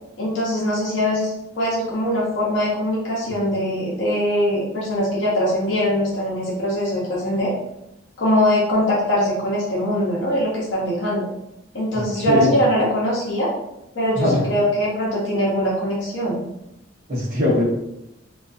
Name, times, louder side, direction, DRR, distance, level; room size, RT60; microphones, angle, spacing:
voice 1, 0.2-7.5 8.2-11.3 11.7-13.5 13.9-16.4, equal, 70° left, -6 dB, 0.6 m, -22 dB
voice 2, 11.9-12.5 14.2-14.5 17.1-17.6, left 1 dB, 50° right, -7 dB, 0.8 m, -21 dB
2.3 x 2.3 x 2.4 m, 0.85 s
head